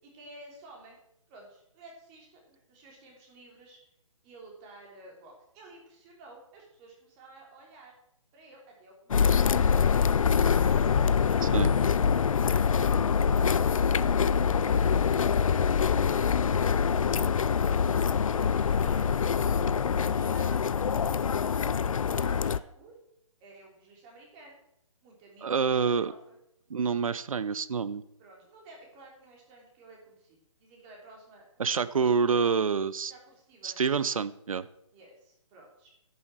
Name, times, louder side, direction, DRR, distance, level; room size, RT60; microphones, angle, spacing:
voice 1, 0.0-1.0 1.3-3.8 4.2-7.9 8.3-10.8 11.2-12.7 13.2-16.2 16.6-19.2 20.0-20.8 21.0-21.6 22.1-22.9 23.4-24.6 25.0-26.4 28.2-31.5 31.7-32.5 33.1-33.9 34.9-35.9, right 2 dB, 20° right, -1 dB, 3.3 m, -53 dB
sound 1, 9.1-22.6, left 6 dB, 70° left, 0.5 m, -25 dB
voice 2, 25.4-26.1 26.7-28.0 31.6-33.1 33.6-34.7, right 5 dB, 75° right, 16 dB, 0.7 m, -27 dB
11.0 x 6.9 x 7.6 m, 0.78 s
hypercardioid pair, 155°, 18 cm